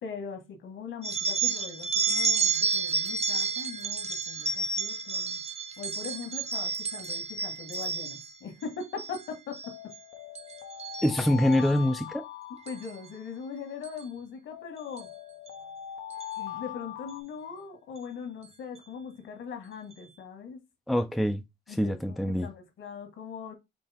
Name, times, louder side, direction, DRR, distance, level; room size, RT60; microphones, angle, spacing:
voice 1, 0.0-5.4 5.8-9.7 12.6-15.1 16.4-20.6 21.7-23.5, left 6 dB, 70° left, 1.7 m, -40 dB
sound 1, 1.0-8.3 8.8-9.2 9.5-10.0 10.3-11.7 12.7-12.9 13.8-14.0 15.0-15.1 15.5-15.6 16.1-16.3, right 4 dB, 30° right, 0.7 m, -30 dB
sound 2, 1.9-3.8 4.2-4.3 4.7-4.8 5.5-5.9 6.5-7.1 7.5-7.9 9.6-13.4 14.5-17.2, left 11 dB, 85° left, 0.8 m, -42 dB
voice 2, 11.0-12.3 20.9-21.4 21.8-22.5, left 1 dB, ahead, 0.4 m, -25 dB
5.2 x 2.8 x 3.5 m
cardioid pair, 90°, 20 cm